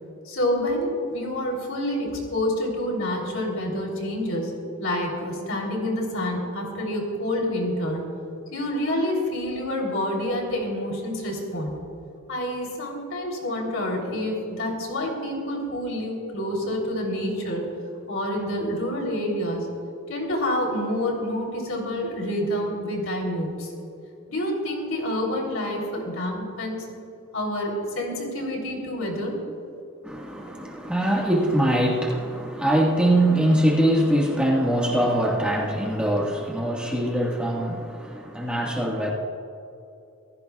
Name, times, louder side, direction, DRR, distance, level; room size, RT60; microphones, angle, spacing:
voice 1, 0.2-4.5 4.8-8.0 8.5-11.8 12.3-17.6 18.1-19.6 20.1-23.7 24.3-26.8 27.3-29.4, left 1 dB, 70° left, 0 dB, 3.4 m, -28 dB
voice 2, 30.0-39.1, right 1 dB, 5° right, -3 dB, 1.6 m, -23 dB
26.5 x 15.5 x 2.4 m, 2.7 s
head